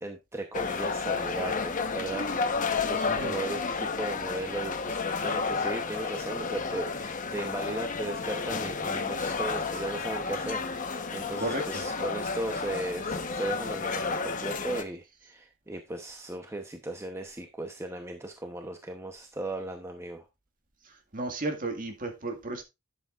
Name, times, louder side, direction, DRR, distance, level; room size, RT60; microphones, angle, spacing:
voice 1, 0.0-20.3, right 2 dB, 15° right, 0.9 m, -37 dB
sound 1, 0.5-14.8, left 4 dB, 40° left, 1.1 m, -31 dB
voice 2, 11.4-11.8 21.1-22.6, right 2 dB, 40° right, 1.9 m, -33 dB
11.5 x 7.8 x 2.5 m
head